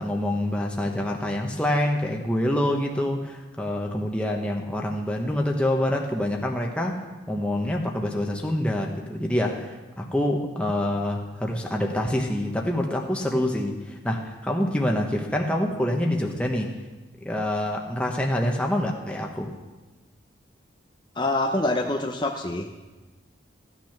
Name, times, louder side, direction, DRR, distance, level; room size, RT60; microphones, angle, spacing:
voice 1, 0.0-7.0 7.3-16.7 17.2-19.5, left 1 dB, 5° left, 0 dB, 1.0 m, -26 dB
voice 2, 21.2-22.7, left 2 dB, 25° left, 2 dB, 0.6 m, -25 dB
15.0 x 9.2 x 5.9 m, 1.2 s
head